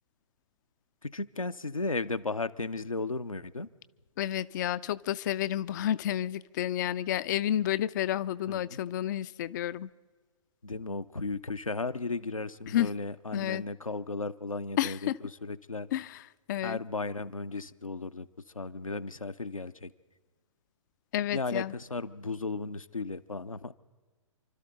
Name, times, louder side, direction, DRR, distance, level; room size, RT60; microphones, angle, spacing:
voice 1, 1.0-3.7 8.5-8.8 10.6-15.9 16.6-18.3 18.5-19.9 21.3-23.7, left 3 dB, 85° left, 9 dB, 0.7 m, -35 dB
voice 2, 4.2-9.9 12.7-12.9 13.3-13.6 14.8-15.1 15.9-16.2 16.5-16.8 21.1-21.7, left 12 dB, 35° left, 15 dB, 0.4 m, -30 dB
28.5 x 12.5 x 3.9 m, 1.4 s
figure-of-eight pair, 120°, 17 cm